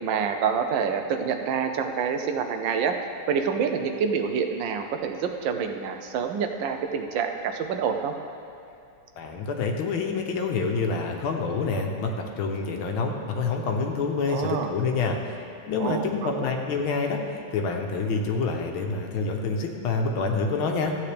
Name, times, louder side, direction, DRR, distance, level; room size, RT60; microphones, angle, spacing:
voice 1, 0.0-2.9 3.3-8.1 14.3-14.7 15.8-16.5, right 6 dB, 75° right, 5 dB, 1.3 m, -27 dB
voice 2, 9.2-15.4 15.7-20.9, left 4 dB, 90° left, 2 dB, 1.7 m, -27 dB
14.0 x 8.6 x 3.4 m, 2.5 s
omnidirectional pair, 2.2 m